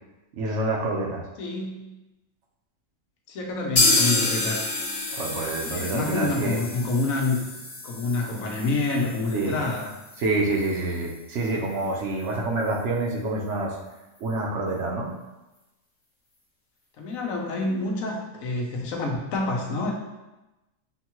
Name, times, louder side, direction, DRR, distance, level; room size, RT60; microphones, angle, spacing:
voice 1, 0.3-1.2 5.1-6.6 9.3-9.6 10.2-13.7 14.2-15.1, right 2 dB, 65° right, -1 dB, 1.0 m, -27 dB
voice 2, 1.4-1.9 3.3-4.7 5.7-7.5 7.8-9.9 17.0-19.9, left 3 dB, 90° left, 0 dB, 1.2 m, -27 dB
sound 1, 3.8-11.5 11.8-11.9 12.2-12.3 12.7-12.8, left 2 dB, 65° left, 1.3 m, -29 dB
6.2 x 2.2 x 2.9 m, 1.0 s
omnidirectional pair, 1.4 m